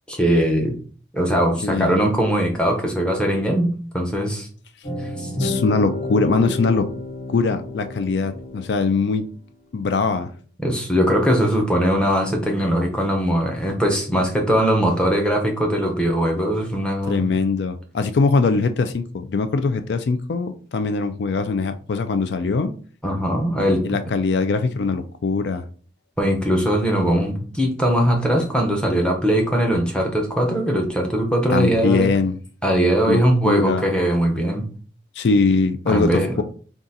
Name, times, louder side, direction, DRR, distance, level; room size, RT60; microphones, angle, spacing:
voice 1, 0.1-0.8 1.1-4.5 5.0-5.3 10.6-17.3 23.0-24.0 26.2-32.2 32.6-34.7 35.9-36.4, equal, 5° left, 1 dB, 0.7 m, -20 dB
voice 2, 1.6-2.0 5.4-6.9 7.3-9.3 9.7-10.3 17.1-22.7 23.8-25.6 31.5-32.4 33.1-33.9 35.2-36.4, left 4 dB, 70° left, 9 dB, 0.4 m, -21 dB
sound 1, 4.8-9.1, left 2 dB, 55° left, 1.9 m, -30 dB
3.8 x 2.4 x 4.0 m, 0.42 s
head